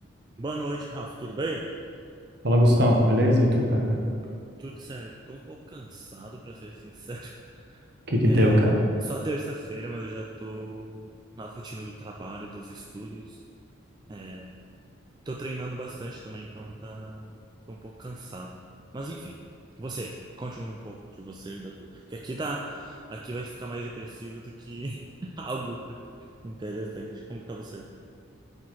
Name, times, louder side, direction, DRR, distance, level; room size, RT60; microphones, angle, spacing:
voice 1, 0.4-1.7 4.6-7.3 7.7-7.8 8.2-8.6 9.0-11.1 11.4-13.4 14.1-14.5 15.3-17.4 17.7-18.5 18.9-19.4 19.8-25.8 26.4-27.9, right 2 dB, 20° right, -1 dB, 0.3 m, -37 dB
voice 2, 2.4-4.0 8.1-8.7, equal, 55° right, -1 dB, 1.1 m, -20 dB
8.4 x 4.4 x 4.6 m, 2.4 s
head